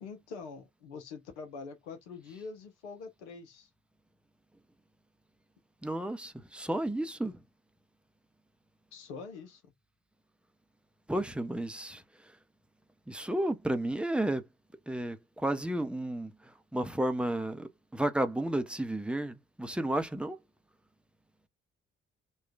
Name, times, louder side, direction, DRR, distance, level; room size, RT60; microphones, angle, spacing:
voice 1, 0.0-3.7 8.9-9.6, left 4 dB, 80° left, 0.9 m, -44 dB
voice 2, 5.8-7.4 11.1-12.0 13.1-14.4 14.9-16.3 16.7-20.4, right 1 dB, 5° right, 0.6 m, -32 dB
4.3 x 2.3 x 2.3 m
figure-of-eight pair, 45°, 34 cm